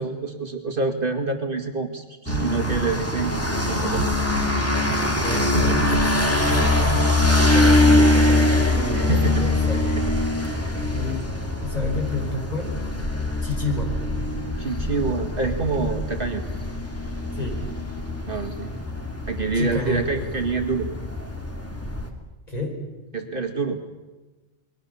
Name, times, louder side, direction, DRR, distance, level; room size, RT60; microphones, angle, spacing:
voice 1, 0.0-4.1 5.2-6.0 8.9-9.5 9.7-10.0 10.3-10.7 14.6-16.4 18.3-18.7 19.3-20.9 23.1-23.8, right 4 dB, 50° right, 4 dB, 2.3 m, -27 dB
sound 1, 2.3-22.1, left 2 dB, 10° left, 2.8 m, -23 dB
sound 2, 2.3-7.9, right 7 dB, 80° right, 1.3 m, -32 dB
voice 2, 5.1-5.8 6.5-9.8 10.9-11.3 11.6-12.7 13.4-14.0 17.3-17.6 19.5-20.1 22.5-22.8, left 2 dB, 35° left, 1 dB, 5.7 m, -31 dB
29.5 x 21.5 x 7.0 m, 1.2 s
omnidirectional pair, 1.1 m